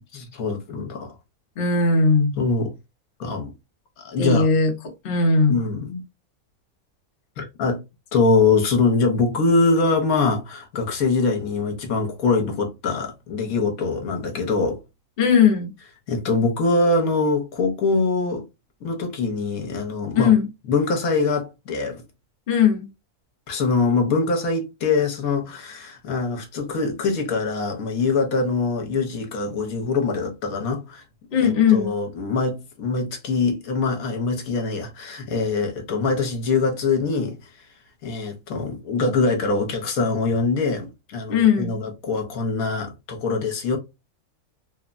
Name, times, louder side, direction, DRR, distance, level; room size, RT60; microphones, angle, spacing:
voice 1, 0.1-1.1 2.4-2.7 3.2-3.5 4.0-4.5 5.5-6.0 7.4-7.8 8.1-14.8 16.1-18.5 18.8-20.3 20.7-22.0 23.5-31.0 31.4-37.4 38.0-43.8, left 3 dB, 75° left, 1.3 m, -23 dB
voice 2, 1.6-2.3 4.2-5.6 15.2-15.7 20.1-20.5 22.5-22.9 31.3-31.9 41.3-41.8, left 5 dB, 50° left, 0.8 m, -18 dB
3.3 x 2.1 x 2.3 m
omnidirectional pair, 1.6 m